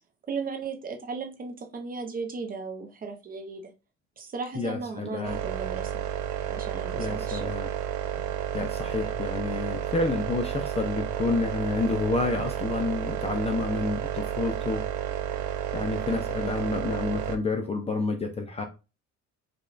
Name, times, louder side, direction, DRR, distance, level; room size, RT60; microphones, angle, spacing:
voice 1, 0.3-3.7 4.2-6.0 6.5-7.5, right 4 dB, 30° right, 0.6 m, -36 dB
voice 2, 4.5-5.4 6.9-7.7 8.5-14.8 15.7-18.6, left 3 dB, 20° left, 0.4 m, -29 dB
sound 1, 5.2-17.4, right 10 dB, 75° right, 0.5 m, -31 dB
5.0 x 2.3 x 2.4 m
cardioid pair, 145°, 30 cm